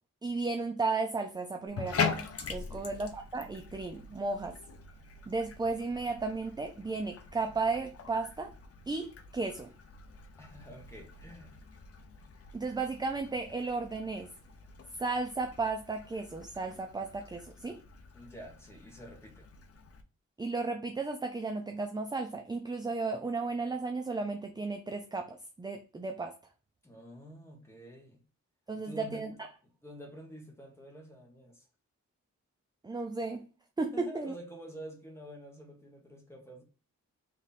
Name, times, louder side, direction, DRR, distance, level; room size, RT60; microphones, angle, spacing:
voice 1, 0.2-2.2 2.5-4.6 5.3-8.5 8.9-9.7 12.5-14.3 15.0-17.8 20.4-26.3 28.7-29.3 32.8-33.4 33.8-34.3, right 3 dB, 15° right, 0.4 m, -34 dB
Bathtub (filling or washing), 1.7-20.0, left 5 dB, 50° left, 0.7 m, -42 dB
voice 2, 2.6-2.9 10.4-11.6 18.1-19.5 26.8-28.2 28.7-29.3 29.8-31.6 33.9-36.6, right 1 dB, 10° left, 1.3 m, -48 dB
3.6 x 3.1 x 4.1 m
wide cardioid pair, 130°, 30 cm